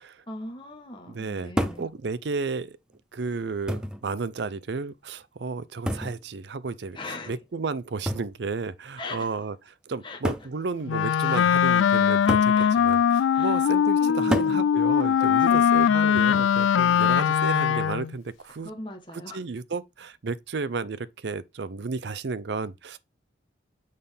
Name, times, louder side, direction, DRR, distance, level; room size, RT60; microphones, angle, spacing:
voice 1, 0.3-1.9 6.9-7.3 9.0-9.3 10.0-10.2 11.2-11.5 12.5-13.0 13.3-13.7 14.0-14.7 15.2-15.7 18.6-19.4, left 1 dB, 25° left, 1.2 m, -39 dB
voice 2, 1.1-2.8 3.1-18.7 19.1-23.0, right 4 dB, 65° right, 0.5 m, -33 dB
sound 1, 1.6-1.9 2.9-3.0 3.7-4.0 5.9-6.2 8.1-8.3 9.4-9.5 10.2-10.5 12.3-12.6 14.3-14.6 16.2-16.5, equal, 5° right, 0.5 m, -29 dB
Wind instrument woodwind instrument, 10.9-18.1, left 8 dB, 85° left, 0.3 m, -21 dB
6.5 x 5.5 x 3.5 m
head